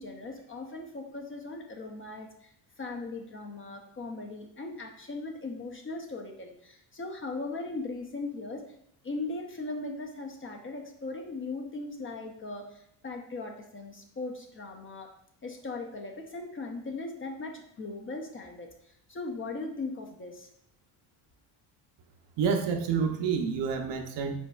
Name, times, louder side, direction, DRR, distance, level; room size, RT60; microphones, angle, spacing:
voice 1, 0.0-2.5 2.8-8.6 9.0-15.1 15.4-20.5, left 3 dB, 25° left, 3 dB, 0.5 m, -39 dB
voice 2, 22.4-24.4, right 6 dB, 60° right, 5 dB, 0.7 m, -28 dB
5.2 x 4.1 x 2.3 m, 0.73 s
cardioid pair, 115°, 49 cm